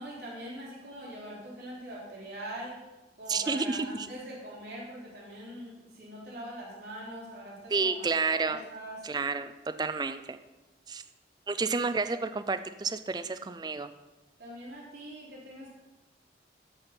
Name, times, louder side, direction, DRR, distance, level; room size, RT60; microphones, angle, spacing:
voice 1, 0.0-2.8 3.2-9.0 14.4-15.7, right 1 dB, 65° right, -6 dB, 3.3 m, -42 dB
voice 2, 3.3-4.1 7.7-8.6 9.0-9.5 9.8-10.4 10.9-11.0 11.5-13.9, right 4 dB, 25° right, 10 dB, 0.3 m, -30 dB
13.0 x 4.4 x 5.2 m, 1.1 s
head